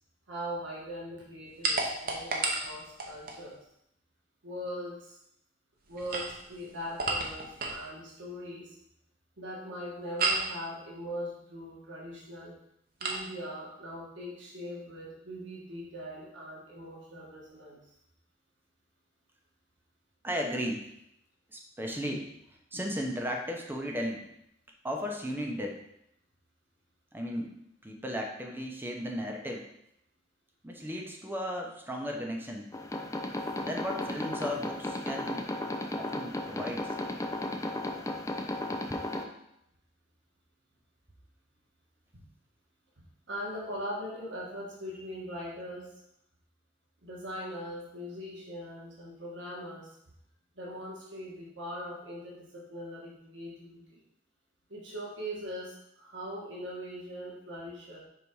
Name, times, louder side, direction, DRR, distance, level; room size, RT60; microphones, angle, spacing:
voice 1, 0.3-3.7 4.4-5.2 5.9-8.8 9.4-12.6 13.0-17.8 42.1-42.2 43.3-45.9 47.0-50.0 50.5-54.0 54.7-58.0, equal, 75° right, -4 dB, 1.5 m, -41 dB
sound 1, 1.6-3.4 5.9-7.9 10.2-10.6 13.0-13.3, right 3 dB, 50° right, 0.9 m, -32 dB
voice 2, 20.2-20.9 21.5-22.2 22.7-24.2 24.8-25.8 27.1-27.5 27.8-29.6 30.6-32.7 33.6-35.5 36.0-37.0, equal, 10° right, 1 dB, 0.8 m, -35 dB
sound 2, 32.7-39.2, left 1 dB, 15° left, 0.5 m, -35 dB
5.4 x 4.0 x 4.7 m, 0.79 s
head